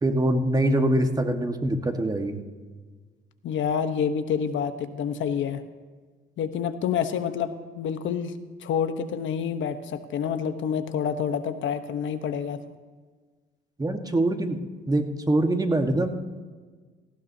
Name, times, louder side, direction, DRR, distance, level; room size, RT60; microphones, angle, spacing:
voice 1, 0.0-2.4 13.8-14.6 14.9-16.1, right 1 dB, 20° right, 5 dB, 1.3 m, -24 dB
voice 2, 3.4-5.6 6.4-8.3 8.6-12.6, left 7 dB, 75° left, 9 dB, 0.9 m, -28 dB
18.0 x 15.0 x 2.7 m, 1.5 s
cardioid pair, 90°, 20 cm